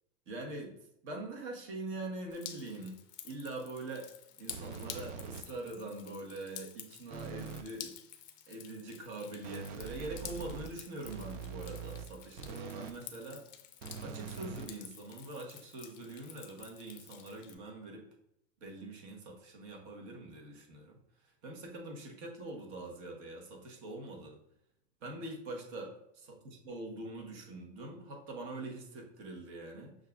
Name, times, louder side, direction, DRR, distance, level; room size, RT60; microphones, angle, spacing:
voice 1, 0.3-0.8 1.0-3.0 3.2-4.1 4.4-7.9 8.5-13.4 14.0-18.0 18.6-21.0 21.4-24.4 25.0-25.9 26.4-30.0, right 2 dB, 60° right, 0 dB, 1.2 m, -43 dB
Drip, 2.3-17.5, left 11 dB, 35° left, 0.4 m, -50 dB
sound 1, 4.5-5.7 7.1-7.8 9.4-13.0 13.8-15.3, right 6 dB, 90° right, 0.5 m, -44 dB
6.3 x 2.5 x 2.3 m, 0.77 s
supercardioid pair, 120°, 36 cm